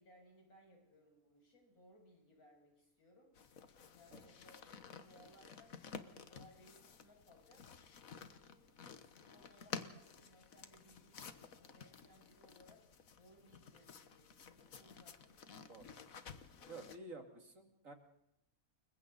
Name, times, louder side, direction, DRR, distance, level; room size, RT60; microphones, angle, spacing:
voice 1, 0.0-7.7 8.1-8.7 9.0-16.2, equal, 90° left, 0 dB, 7.5 m, -66 dB
sound 1, 3.4-17.0, left 6 dB, 70° left, 1.7 m, -53 dB
voice 2, 16.7-17.9, right 3 dB, 65° right, 4 dB, 3.1 m, -52 dB
30.0 x 22.0 x 4.1 m, 0.83 s
omnidirectional pair, 1.5 m